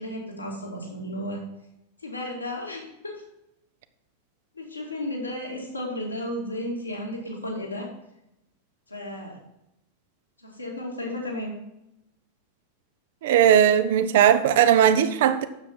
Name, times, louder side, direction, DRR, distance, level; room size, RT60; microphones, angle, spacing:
voice 1, 0.0-1.4 2.0-3.2 4.5-7.9 8.9-9.4 10.4-11.5, left 1 dB, 85° left, 2.3 m, -33 dB
voice 2, 13.2-15.4, right 9 dB, 55° right, 0.6 m, -18 dB
8.7 x 7.1 x 4.4 m
figure-of-eight pair, 90°, 0 cm